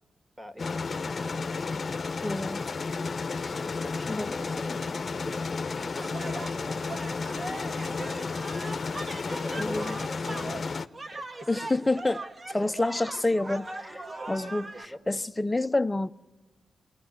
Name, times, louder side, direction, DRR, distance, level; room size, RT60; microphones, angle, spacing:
voice 1, 0.4-1.8 3.7-8.6 9.3-10.7 11.1-11.7 14.7-15.0, equal, 10° right, 2.7 m, -45 dB
sound 1, 0.6-10.9, left 4 dB, 50° left, 0.9 m, -32 dB
voice 2, 2.2-2.6 3.4-3.5 4.1-4.3 9.6-10.0 11.5-12.2 12.5-16.1, left 2 dB, 20° left, 0.8 m, -28 dB
sound 2, 6.0-14.8, right 2 dB, 40° right, 2.0 m, -40 dB
27.5 x 20.0 x 9.6 m
cardioid pair, 50°, 0 cm